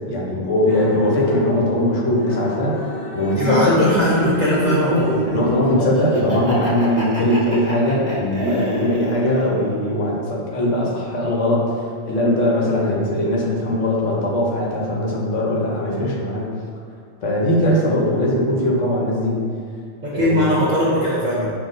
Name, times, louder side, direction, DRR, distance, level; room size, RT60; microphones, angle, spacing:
voice 1, 0.1-2.7 3.1-3.6 5.3-11.7 12.1-16.5 17.2-19.5 20.1-20.4, left 1 dB, 85° left, -4 dB, 1.1 m, -20 dB
sound 1, 0.7-5.7, left 1 dB, 45° left, 0.8 m, -31 dB
voice 2, 3.4-5.2 16.0-16.2 20.0-21.5, equal, 50° right, -8 dB, 0.6 m, -20 dB
Laughter, 3.5-9.4, equal, 10° left, 1.0 m, -25 dB
5.7 x 2.4 x 2.6 m, 2.3 s
omnidirectional pair, 1.2 m